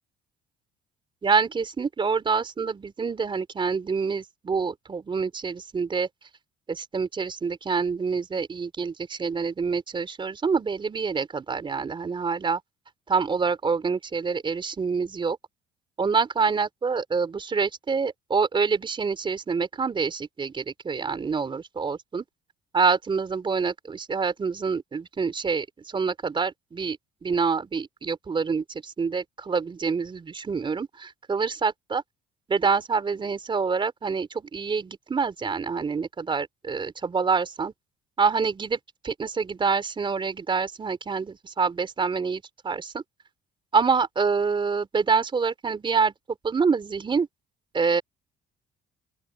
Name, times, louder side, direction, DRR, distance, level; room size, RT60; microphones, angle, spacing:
voice 1, 1.2-6.1 6.7-12.6 13.1-15.4 16.0-22.2 22.7-32.0 32.5-37.7 38.2-38.8 39.0-43.0 43.7-46.1 46.4-47.3 47.7-48.0, right 5 dB, 30° right, 4.2 m, -26 dB
open air
cardioid pair, 110°, 17 cm